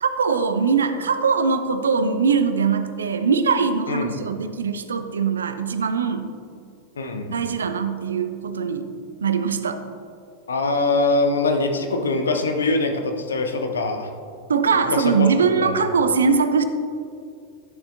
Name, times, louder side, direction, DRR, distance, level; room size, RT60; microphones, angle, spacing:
voice 1, 0.0-6.3 7.3-8.9 9.2-9.8 14.5-16.6, right 5 dB, 70° right, 9 dB, 0.5 m, -21 dB
voice 2, 7.0-7.4 10.5-14.1 14.9-15.3 15.6-15.8, left 3 dB, 70° left, 5 dB, 0.8 m, -23 dB
11.5 x 6.9 x 2.6 m, 2.4 s
figure-of-eight pair, 90°, 0 cm